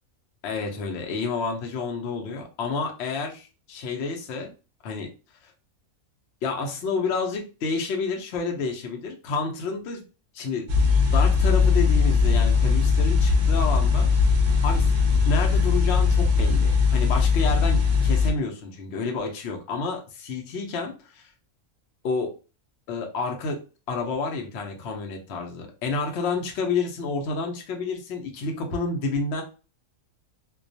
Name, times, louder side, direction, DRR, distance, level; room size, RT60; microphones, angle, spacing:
voice 1, 0.4-4.5 4.8-5.1 6.4-10.0 10.3-10.7 11.1-14.1 14.6-21.3 22.0-22.3 22.9-23.6 23.9-29.4, left 4 dB, 65° left, 2 dB, 0.7 m, -29 dB
sound 1, 10.7-18.3, left 5 dB, 60° right, 0.5 m, -20 dB
2.3 x 2.2 x 2.6 m, 0.33 s
omnidirectional pair, 1.4 m